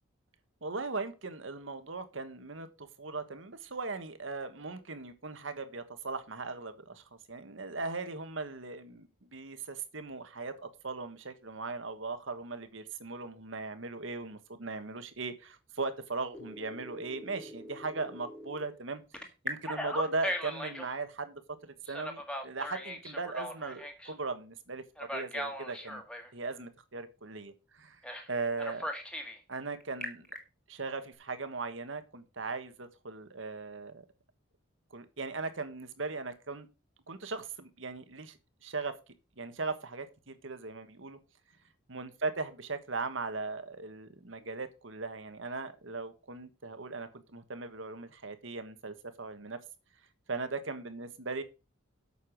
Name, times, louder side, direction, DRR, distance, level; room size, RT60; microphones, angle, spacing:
voice 1, 0.6-19.0 19.4-26.0 26.3-28.0 28.3-28.9 29.5-30.3 30.7-34.0 34.9-36.7 37.1-38.9 39.4-41.2 41.9-49.6 50.3-51.4, right 3 dB, 70° right, 1.4 m, -38 dB
Telephone, 16.3-18.6 19.1-20.9 21.9-24.1 25.0-26.3 28.0-28.3 28.6-29.4 29.8-30.4, equal, 5° left, 1.7 m, -39 dB
8.4 x 6.7 x 6.5 m
head